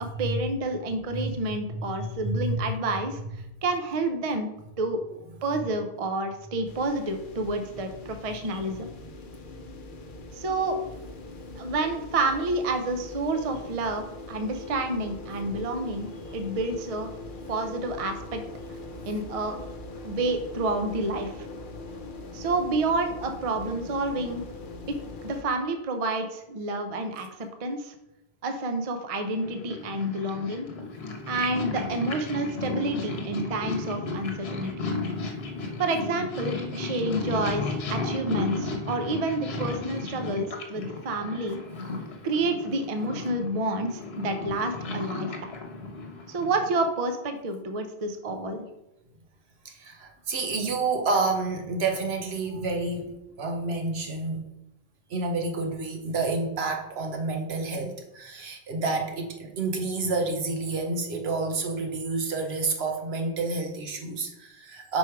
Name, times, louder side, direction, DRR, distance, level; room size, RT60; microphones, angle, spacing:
voice 1, 0.2-3.2 3.6-4.5 4.8-5.0 5.4-8.9 10.3-10.8 11.6-16.1 16.3-17.1 17.5-18.4 19.0-19.6 20.0-21.5 22.3-24.4 24.9-25.0 25.2-27.9 28.4-30.7 31.3-34.7 35.8-41.6 42.2-45.5 46.3-48.6, right 2 dB, 40° right, 6 dB, 0.6 m, -29 dB
voice 2, 1.7-2.7 5.1-5.2 8.4-8.6 49.6-54.5 55.1-65.0, right 3 dB, 80° right, 3 dB, 1.2 m, -29 dB
sound 1, 6.6-25.4, left 2 dB, 60° left, 0.8 m, -41 dB
Purr, 29.2-46.9, left 3 dB, 75° left, 1.2 m, -34 dB
5.2 x 4.8 x 4.6 m, 0.92 s
omnidirectional pair, 1.0 m